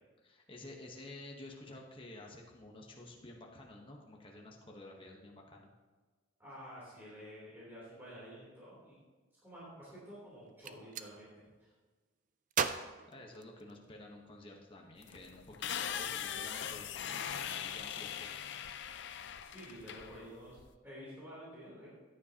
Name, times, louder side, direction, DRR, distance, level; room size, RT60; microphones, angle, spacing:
voice 1, 0.2-5.7 13.1-18.3, left 2 dB, 25° left, 0 dB, 1.1 m, -51 dB
voice 2, 6.4-8.9 9.4-11.3 11.6-11.7 19.4-20.6 20.8-21.9, equal, 10° right, -9 dB, 3.3 m, -50 dB
Gunshot gunfire, 10.4-11.1 12.5-14.0, right 7 dB, 40° right, 0.4 m, -37 dB
sound 1, 15.0-20.7, left 9 dB, 60° left, 0.5 m, -41 dB
15.0 x 9.8 x 2.9 m, 1.3 s
head